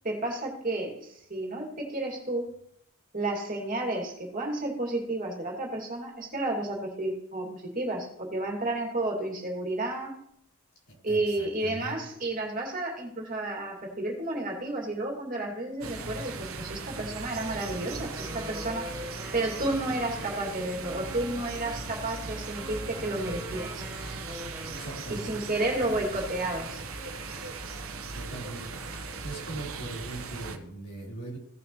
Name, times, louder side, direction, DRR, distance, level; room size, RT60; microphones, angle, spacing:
voice 1, 0.0-2.5 3.1-10.1 11.0-18.9 19.3-23.8 25.1-26.8, right 2 dB, 40° right, -1 dB, 2.6 m, -31 dB
voice 2, 10.9-12.0 24.7-25.4 28.1-31.4, right 2 dB, 80° left, -4 dB, 4.2 m, -41 dB
sound 1, 15.8-30.6, right 3 dB, 65° right, 1.1 m, -38 dB
Wind instrument woodwind instrument, 17.5-25.5, right 1 dB, 15° right, 1.5 m, -44 dB
17.0 x 6.9 x 3.2 m, 0.73 s
head